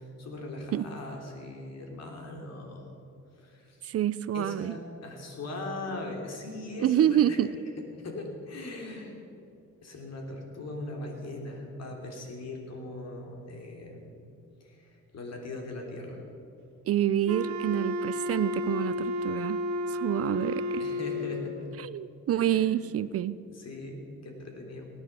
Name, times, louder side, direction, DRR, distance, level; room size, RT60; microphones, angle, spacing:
voice 1, 0.0-2.9 3.3-3.8 4.3-7.4 8.0-9.2 9.8-14.1 14.6-16.2 20.8-21.8 22.3-22.7 23.5-24.9, left 2 dB, 60° left, 1 dB, 3.3 m, -40 dB
voice 2, 3.8-4.8 6.8-7.5 16.9-19.6 19.9-20.8 21.8-23.4, right 11 dB, 50° right, 17 dB, 0.5 m, -27 dB
Wind instrument woodwind instrument, 17.3-21.6, left 1 dB, 70° right, 1.1 m, -32 dB
18.0 x 9.8 x 6.9 m, 2.7 s
cardioid pair, 90°, 30 cm